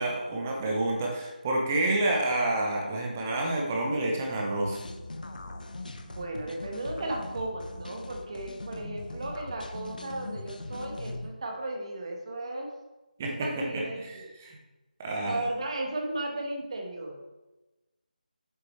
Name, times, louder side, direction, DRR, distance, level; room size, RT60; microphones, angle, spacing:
voice 1, 0.0-4.8 13.2-13.6 14.0-14.6 15.0-15.4, right 2 dB, 15° right, -1 dB, 0.7 m, -29 dB
sound 1, 4.6-11.3, left 2 dB, 65° left, 0.8 m, -40 dB
voice 2, 6.1-12.7 13.2-14.3 15.2-17.2, right 2 dB, 35° right, 1 dB, 1.4 m, -35 dB
7.9 x 6.0 x 3.2 m, 1.1 s
figure-of-eight pair, 170°, 5 cm